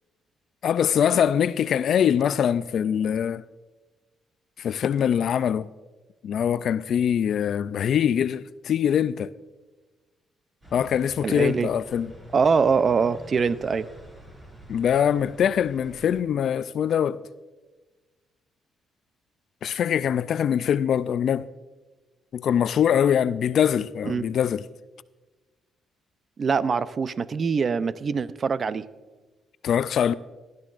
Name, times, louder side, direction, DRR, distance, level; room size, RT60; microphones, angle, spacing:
voice 1, 0.6-3.4 4.6-5.7 6.2-9.3 10.7-12.1 14.7-17.2 19.6-21.5 22.3-24.7 29.6-30.1, left 8 dB, 65° left, 0.3 m, -23 dB
sound 1, 10.6-16.2, right 1 dB, 20° right, 4.6 m, -47 dB
voice 2, 11.2-11.7 12.3-13.9 24.1-24.3 26.4-28.9, right 5 dB, 45° right, 0.5 m, -23 dB
18.5 x 12.0 x 2.5 m
cardioid pair, 90°, 0 cm